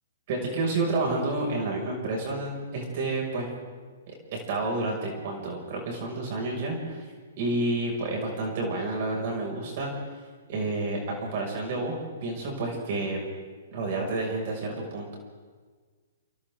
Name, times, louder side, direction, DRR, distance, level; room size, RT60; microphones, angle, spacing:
voice 1, 0.3-3.5 4.1-7.1 7.4-9.9 10.5-12.0 12.2-13.2 13.7-15.2, right 2 dB, 50° right, 0 dB, 6.2 m, -30 dB
29.0 x 26.0 x 3.8 m, 1.5 s
hypercardioid pair, 145°, 0 cm